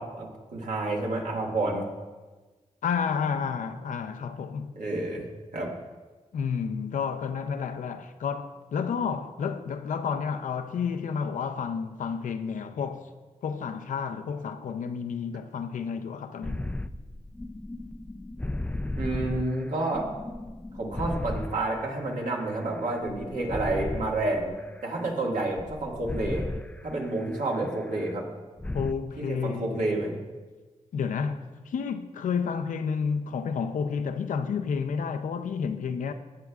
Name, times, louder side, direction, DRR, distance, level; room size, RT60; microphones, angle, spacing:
voice 1, 0.0-1.9 4.8-5.7 19.0-20.1 20.7-24.6 24.8-26.5 26.8-28.3 29.2-30.1, right 2 dB, 80° right, 2.0 m, -29 dB
voice 2, 2.8-4.8 6.3-13.1 13.4-16.7 28.7-29.9 30.9-36.1, left 6 dB, 85° left, 0.6 m, -30 dB
sound 1, 16.4-22.6 22.9-25.0 25.6-28.1 28.6-28.9, left 1 dB, 10° left, 0.4 m, -35 dB
15.5 x 7.4 x 2.4 m
cardioid pair, 60°, 13 cm